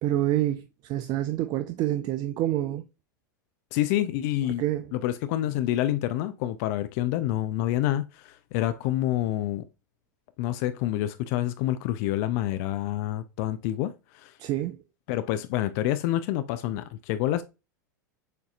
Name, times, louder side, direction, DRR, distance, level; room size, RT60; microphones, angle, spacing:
voice 1, 0.0-2.8 4.6-4.9 14.4-14.8, right 13 dB, 40° right, 0.4 m, -27 dB
voice 2, 3.7-4.6 4.9-9.6 10.4-14.3 15.1-17.4, left 13 dB, 55° left, 0.4 m, -27 dB
6.5 x 2.7 x 2.4 m
hypercardioid pair, 110°, 10 cm